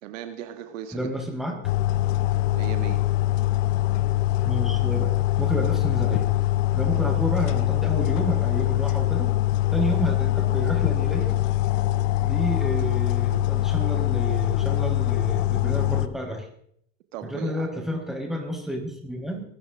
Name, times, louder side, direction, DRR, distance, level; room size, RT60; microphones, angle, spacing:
voice 1, 0.0-1.1 2.5-3.0 17.1-17.7, right 10 dB, 85° right, 8 dB, 2.0 m, -37 dB
voice 2, 0.9-1.7 4.4-6.3 6.7-9.3 9.7-11.4 12.2-16.5 17.2-19.4, equal, ahead, 1 dB, 4.8 m, -30 dB
sound 1, 1.6-16.1, left 14 dB, 80° left, 1.1 m, -23 dB
23.5 x 13.5 x 3.8 m, 0.68 s
supercardioid pair, 100°, 38 cm